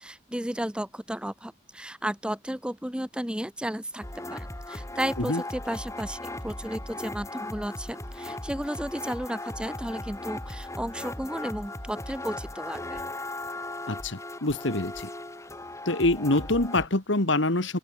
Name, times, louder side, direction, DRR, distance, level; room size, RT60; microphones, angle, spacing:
voice 1, 0.0-13.0, right 1 dB, 5° right, 1.0 m, -33 dB
sound 1, 4.0-16.9, left 2 dB, 15° left, 2.1 m, -37 dB
voice 2, 13.9-15.1 15.9-17.8, left 2 dB, 75° left, 2.4 m, -25 dB
open air
head